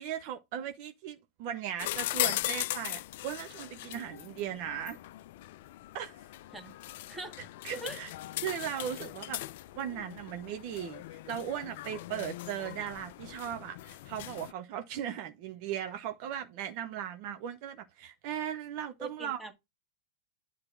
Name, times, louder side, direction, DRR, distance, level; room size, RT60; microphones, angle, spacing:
voice 1, 0.0-5.0 5.9-6.2 7.6-8.1 8.4-9.4 9.7-19.4, right 9 dB, 45° right, 1.1 m, -38 dB
sound 1, 1.8-14.5, left 16 dB, 55° left, 0.4 m, -39 dB
voice 2, 7.1-7.4 7.8-8.0 19.0-19.5, right 3 dB, 10° right, 1.9 m, -42 dB
9.8 x 3.9 x 4.5 m
figure-of-eight pair, 95°, 0 cm